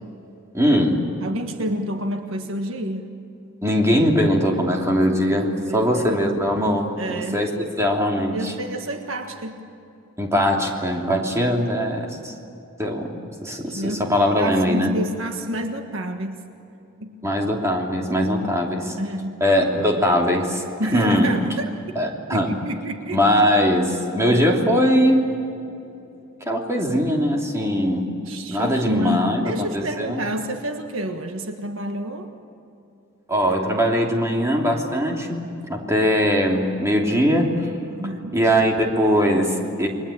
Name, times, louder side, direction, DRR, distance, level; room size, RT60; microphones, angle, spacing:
voice 1, 0.5-1.0 3.6-7.5 7.8-8.5 10.2-12.3 12.8-13.2 13.4-14.9 17.2-18.9 19.4-21.3 21.9-22.5 23.1-25.2 26.4-28.1 28.5-30.2 33.3-35.4 35.7-37.7 38.3-39.9, equal, 15° right, 0 dB, 3.1 m, -21 dB
voice 2, 1.2-3.1 5.7-5.9 7.0-7.5 8.3-9.6 13.5-16.4 17.0-17.2 19.0-19.4 20.8-21.7 22.3-23.2 24.3-24.4 28.3-32.3 37.9-38.4, equal, 60° right, 5 dB, 1.6 m, -29 dB
29.5 x 23.0 x 8.7 m, 2.8 s
head